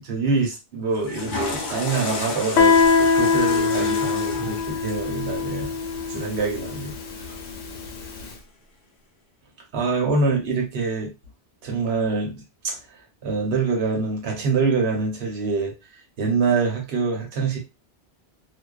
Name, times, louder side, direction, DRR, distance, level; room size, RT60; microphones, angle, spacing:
voice 1, 0.0-5.7 6.1-6.9 7.3-7.4 9.7-11.1 11.6-12.8 13.2-15.7 16.2-17.6, right 4 dB, 70° right, 0 dB, 1.0 m, -25 dB
Water / Toilet flush, 0.9-7.2, left 3 dB, 55° left, 0.6 m, -33 dB
Guitar, 2.6-8.0, left 5 dB, 80° left, 0.9 m, -22 dB
2.5 x 2.1 x 2.3 m, 0.25 s
omnidirectional pair, 1.1 m